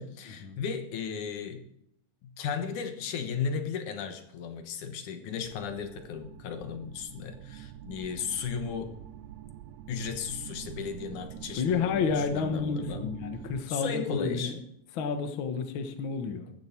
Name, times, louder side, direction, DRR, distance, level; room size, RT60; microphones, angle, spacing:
voice 1, 0.0-1.6 2.2-8.9 9.9-13.1 13.7-14.6, left 6 dB, 75° left, 7 dB, 2.8 m, -35 dB
sound 1, 5.4-13.6, right 11 dB, 75° right, 1.9 m, -45 dB
voice 2, 11.4-14.6 15.0-16.5, left 5 dB, 55° left, 7 dB, 1.6 m, -30 dB
14.5 x 10.5 x 4.5 m, 0.76 s
omnidirectional pair, 3.6 m